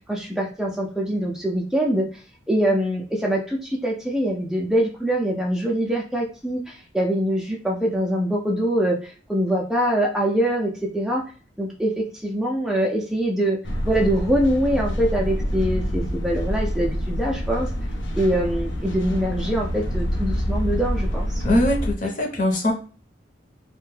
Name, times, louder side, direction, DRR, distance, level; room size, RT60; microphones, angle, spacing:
voice 1, 0.1-2.2 2.5-11.2 11.6-13.6 13.8-17.7 18.2-21.4, right 1 dB, 5° right, -2 dB, 0.3 m, -24 dB
sound 1, 13.6-21.9, equal, 90° left, 0.6 m, -26 dB
voice 2, 21.4-22.7, left 1 dB, 45° left, 2 dB, 0.8 m, -21 dB
2.6 x 2.2 x 3.1 m, 0.39 s
head